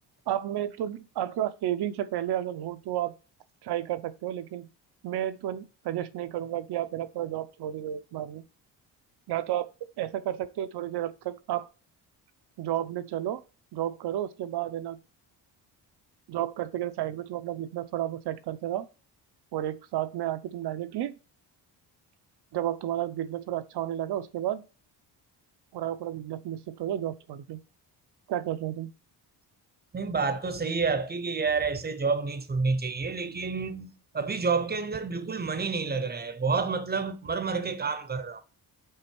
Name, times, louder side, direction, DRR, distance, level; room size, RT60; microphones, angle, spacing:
voice 1, 0.3-3.2 3.6-4.7 5.0-8.4 9.3-9.7 10.0-11.7 12.6-13.4 13.7-15.0 16.3-18.9 19.5-21.2 22.5-24.6 25.7-27.6 28.3-28.9, right 12 dB, 70° right, 0.8 m, -32 dB
voice 2, 29.9-38.4, right 4 dB, 25° right, 0.8 m, -29 dB
5.6 x 4.0 x 6.1 m
cardioid pair, 115°, 41 cm